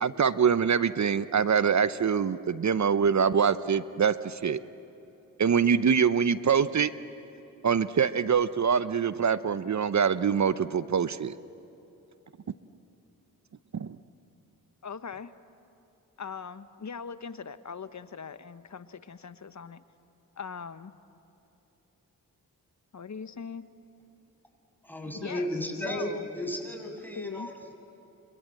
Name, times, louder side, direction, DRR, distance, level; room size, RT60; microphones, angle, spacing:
voice 1, 0.0-4.6 5.4-6.9 7.6-11.3 13.7-14.0, right 6 dB, 45° right, 14 dB, 0.9 m, -24 dB
voice 2, 14.8-15.3 16.2-19.8 20.4-20.9 22.9-23.7 25.1-25.5 25.8-26.2 27.1-27.5, left 6 dB, 45° left, 12 dB, 1.2 m, -40 dB
voice 3, 24.8-27.7, left 1 dB, 5° left, 3 dB, 7.6 m, -34 dB
29.5 x 26.0 x 7.8 m, 2.9 s
supercardioid pair, 40°, 40 cm